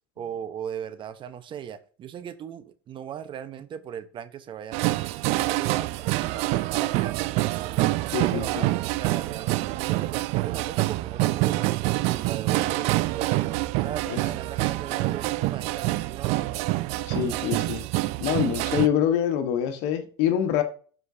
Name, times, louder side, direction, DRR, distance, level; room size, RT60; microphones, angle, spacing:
voice 1, 0.2-5.0 5.3-7.9 8.3-13.4 13.8-16.6, right 9 dB, 40° right, 1.0 m, -38 dB
sound 1, 4.7-18.9, right 19 dB, 55° right, 0.5 m, -26 dB
voice 2, 8.1-8.7 14.1-14.2 17.1-17.8 18.2-20.6, left 9 dB, 60° left, 1.4 m, -25 dB
12.5 x 5.3 x 2.8 m
hypercardioid pair, 80°, 13 cm